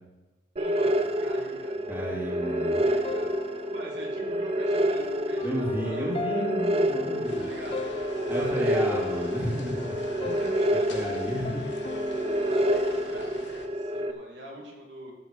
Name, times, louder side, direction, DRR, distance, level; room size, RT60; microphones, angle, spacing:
sound 1, 0.6-14.1, right 1 dB, 35° right, 0.7 m, -28 dB
voice 1, 0.6-6.1 6.3-6.5 7.4-8.8 10.4-11.2 12.4-15.1, right 1 dB, 75° right, -2 dB, 2.9 m, -44 dB
voice 2, 1.9-2.8 5.4-7.5 8.3-11.6, equal, 10° right, -3 dB, 2.5 m, -33 dB
sound 2, 2.4-13.5, left 3 dB, 35° left, 0.4 m, -39 dB
sound 3, 7.2-13.7, left 3 dB, 75° left, 1.2 m, -46 dB
14.5 x 7.1 x 5.1 m, 1.1 s
head